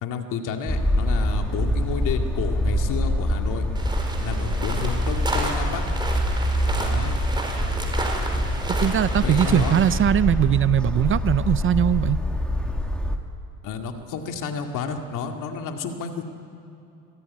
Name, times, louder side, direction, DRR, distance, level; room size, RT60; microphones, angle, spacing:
voice 1, 0.0-3.7 4.2-5.8 6.8-7.2 9.2-9.8 13.6-16.2, left 6 dB, 60° left, 4 dB, 2.3 m, -30 dB
sound 1, 0.7-13.2, left 1 dB, 5° left, 1.8 m, -25 dB
sound 2, 3.8-10.0, right 2 dB, 15° right, 4.2 m, -32 dB
voice 2, 8.8-12.2, right 10 dB, 35° right, 16 dB, 0.6 m, -20 dB
24.5 x 14.0 x 9.7 m, 2.7 s
supercardioid pair, 100°, 35 cm